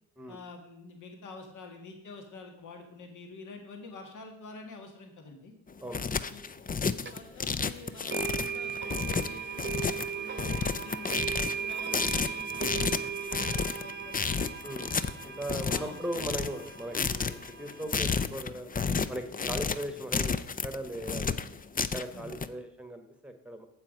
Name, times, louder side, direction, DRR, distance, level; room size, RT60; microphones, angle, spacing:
voice 1, 0.3-5.5 6.3-6.5 7.0-14.5 15.6-16.0 22.1-22.4, left 3 dB, 60° left, 3 dB, 1.9 m, -47 dB
sound 1, 5.7-22.5, left 5 dB, 25° left, 0.6 m, -31 dB
sound 2, 7.1-7.2 8.1-18.2, right 7 dB, 30° right, 1.0 m, -37 dB
voice 2, 14.6-15.0 15.2-18.7 19.1-20.3 20.6-21.4 21.9-23.7, right 1 dB, 5° right, 6 dB, 1.2 m, -38 dB
7.5 x 7.5 x 5.2 m, 0.81 s
supercardioid pair, 55°, 34 cm